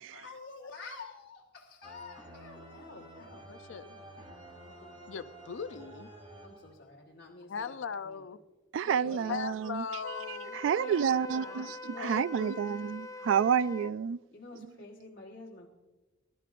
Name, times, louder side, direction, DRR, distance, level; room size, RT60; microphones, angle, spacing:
voice 1, 0.2-4.1 4.6-5.0 6.4-8.2 8.8-9.4 10.7-11.8 14.3-15.7, left 3 dB, 60° left, 1.4 m, -48 dB
sound 1, 1.8-7.1, right 1 dB, 25° right, 2.8 m, -51 dB
voice 2, 3.5-3.9 5.1-6.1 7.5-8.4 9.1-10.6 11.9-13.1, left 6 dB, 80° left, 0.5 m, -39 dB
voice 3, 8.7-9.8 10.5-11.6 12.0-14.2, right 8 dB, 80° right, 0.3 m, -29 dB
Wind instrument woodwind instrument, 10.0-13.9, left 3 dB, 15° left, 0.4 m, -44 dB
20.5 x 12.5 x 2.5 m
head